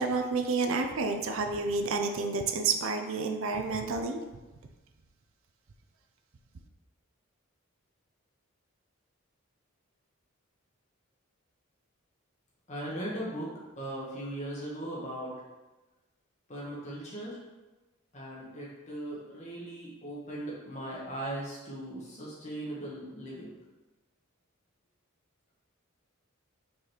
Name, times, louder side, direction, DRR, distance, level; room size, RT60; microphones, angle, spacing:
voice 1, 0.0-4.2, right 4 dB, 65° right, 5 dB, 0.5 m, -30 dB
voice 2, 12.7-15.4 16.5-17.4 18.1-23.5, right 1 dB, 30° left, -5 dB, 1.3 m, -38 dB
5.3 x 4.1 x 4.4 m, 1.1 s
head